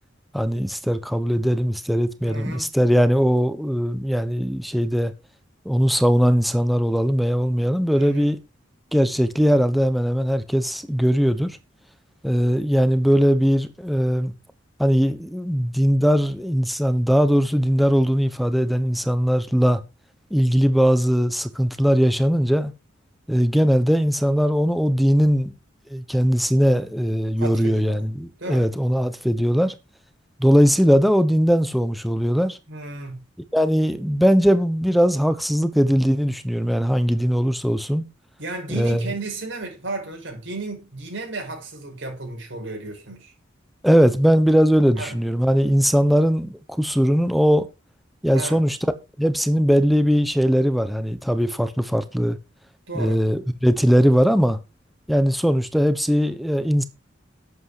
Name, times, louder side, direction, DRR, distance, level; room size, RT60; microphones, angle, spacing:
voice 1, 0.3-5.1 5.6-8.4 8.9-11.6 12.2-14.3 14.8-19.8 20.3-22.7 23.3-25.5 25.9-29.7 30.4-32.6 33.5-38.0 38.8-39.1 43.8-47.7 48.2-48.8 49.2-52.4 52.9-54.6 55.1-56.8, equal, ahead, 1.0 m, -20 dB
voice 2, 2.2-2.7 7.9-8.3 27.4-28.1 28.4-28.7 32.7-33.2 38.4-43.3 45.0-45.2 48.3-48.6 52.9-53.2, right 2 dB, 70° right, 6.2 m, -33 dB
11.0 x 8.3 x 4.9 m
head